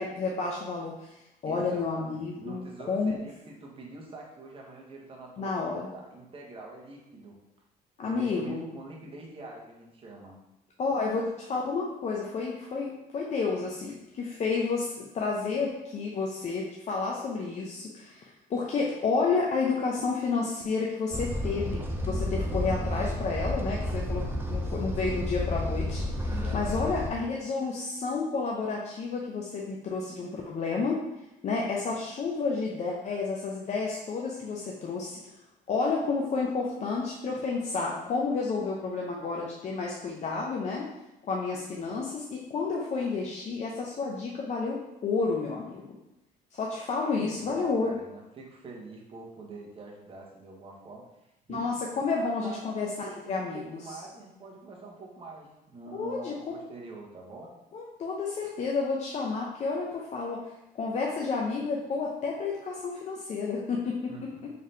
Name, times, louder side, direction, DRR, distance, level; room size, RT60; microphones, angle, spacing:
voice 1, 0.0-3.1 5.4-5.9 8.0-8.7 10.8-24.2 24.5-26.3 26.5-31.0 31.4-35.2 35.7-40.9 41.2-44.8 45.0-45.8 46.5-47.9 51.5-53.8 55.9-56.3 57.7-60.4 60.7-64.3, left 4 dB, 40° left, -2 dB, 0.5 m, -30 dB
voice 2, 1.5-7.4 8.0-10.3 26.3-27.2 47.2-51.7 52.1-52.6 53.1-57.5 64.1-64.5, right 3 dB, 35° right, -2 dB, 1.0 m, -45 dB
sound 1, 21.1-27.1, left 1 dB, 15° right, 0.5 m, -31 dB
3.9 x 3.3 x 2.7 m, 0.91 s
cardioid pair, 110°, 17 cm